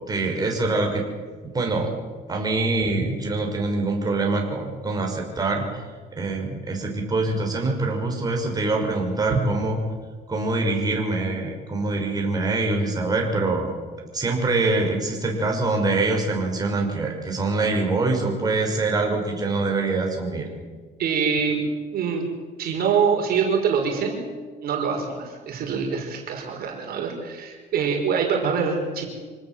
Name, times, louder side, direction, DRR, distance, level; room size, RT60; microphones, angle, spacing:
voice 1, 0.1-1.0 1.4-1.9 2.3-5.8 6.2-9.8 10.3-13.8 14.1-20.5, right 3 dB, 20° right, 0 dB, 6.2 m, -24 dB
voice 2, 21.0-21.6 21.9-22.2 22.6-24.3 24.6-29.0, right 6 dB, 65° right, 1 dB, 5.4 m, -24 dB
26.5 x 18.5 x 7.7 m, 1.5 s
cardioid pair, 110°, 17 cm